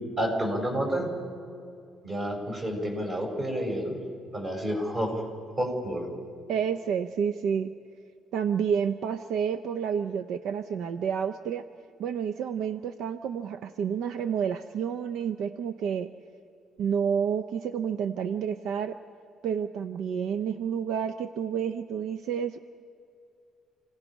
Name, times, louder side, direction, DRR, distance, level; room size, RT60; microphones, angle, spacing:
voice 1, 0.2-1.1 2.0-4.0 4.3-5.1 5.6-6.1, equal, 30° right, 1 dB, 4.7 m, -29 dB
voice 2, 6.5-7.7 8.3-11.6 12.0-16.1 16.8-19.0 19.4-22.6, right 7 dB, 75° right, 10 dB, 0.6 m, -29 dB
29.0 x 17.0 x 5.5 m, 2.5 s
cardioid pair, 120°, 0 cm